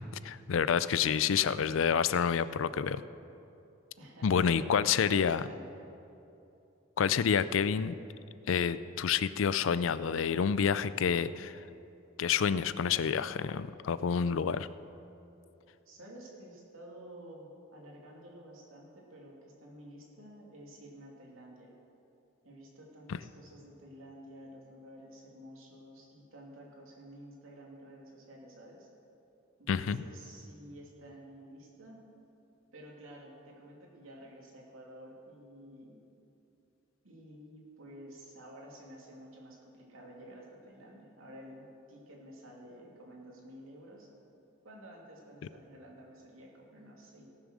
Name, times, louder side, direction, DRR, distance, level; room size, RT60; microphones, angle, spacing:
voice 1, 0.2-3.0 4.2-5.4 7.0-8.0 8.5-11.6 12.2-14.7 23.1-23.2 29.7-30.0, left 7 dB, 70° left, 15 dB, 0.4 m, -28 dB
voice 2, 4.0-5.7 15.9-21.7 22.4-28.9 29.6-32.0 32.7-36.0 37.0-44.1 44.6-47.3, right 1 dB, 85° right, -2 dB, 2.7 m, -51 dB
17.5 x 7.2 x 6.3 m, 2.8 s
head